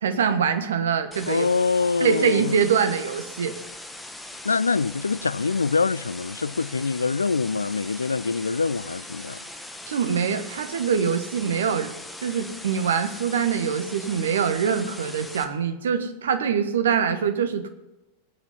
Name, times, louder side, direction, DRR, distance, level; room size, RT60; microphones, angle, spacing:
voice 1, 0.0-1.5 2.0-3.6 9.9-11.9 12.2-17.7, right 7 dB, 65° right, 1.3 m, -24 dB
sound 1, 1.1-15.4, left 1 dB, 5° left, 1.5 m, -40 dB
voice 2, 1.3-2.5 4.4-9.4, left 4 dB, 75° left, 0.4 m, -24 dB
20.5 x 8.3 x 5.6 m
figure-of-eight pair, 90°, 0 cm